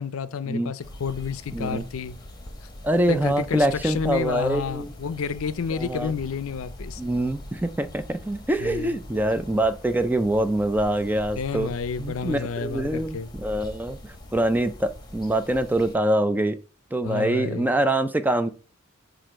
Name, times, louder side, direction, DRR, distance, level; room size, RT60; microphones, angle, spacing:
voice 1, 0.0-2.2 3.1-7.0 8.6-9.0 11.4-13.3 17.0-17.7, left 6 dB, 90° left, 0.5 m, -30 dB
sound 1, 0.8-16.0, left 1 dB, 20° left, 1.0 m, -42 dB
voice 2, 1.5-1.8 2.8-4.9 5.7-6.1 7.0-11.7 12.0-14.0 14.3-16.6 16.9-18.5, right 1 dB, 10° right, 0.4 m, -24 dB
7.5 x 2.6 x 4.9 m
head